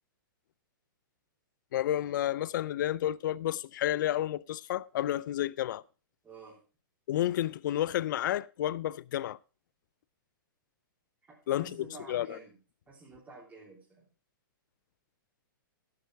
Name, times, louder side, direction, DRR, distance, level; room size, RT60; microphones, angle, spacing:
voice 1, 1.7-5.8 7.1-9.4 11.5-12.4, left 12 dB, 60° left, 0.5 m, -31 dB
voice 2, 6.2-6.6 11.3-12.6 12.9-14.1, right 3 dB, 15° right, 3.5 m, -50 dB
12.5 x 8.6 x 4.7 m
hypercardioid pair, 150°, 12 cm